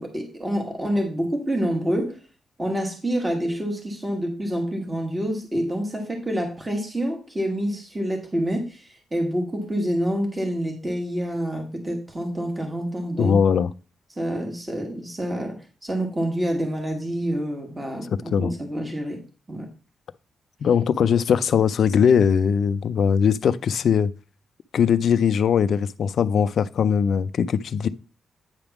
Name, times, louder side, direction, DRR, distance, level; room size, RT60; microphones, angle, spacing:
voice 1, 0.0-2.2 2.6-13.4 14.2-19.2 19.5-19.7, equal, 15° right, 1.4 m, -27 dB
voice 2, 13.2-13.7 18.3-18.5 20.6-24.1 24.7-27.9, left 7 dB, 55° left, 0.4 m, -20 dB
8.9 x 3.5 x 5.8 m
wide cardioid pair, 175°, 0 cm